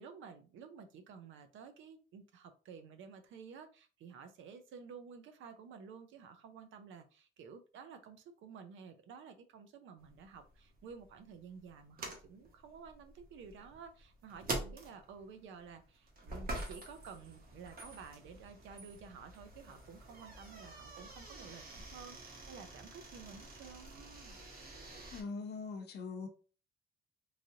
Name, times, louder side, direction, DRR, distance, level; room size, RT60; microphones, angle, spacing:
voice 1, 0.0-24.4, right 6 dB, 80° right, 0.6 m, -52 dB
sound 1, 10.0-25.2, right 2 dB, 45° right, 1.0 m, -47 dB
voice 2, 25.1-26.3, left 4 dB, 55° left, 0.7 m, -42 dB
3.2 x 2.4 x 2.7 m
cardioid pair, 90°, 20 cm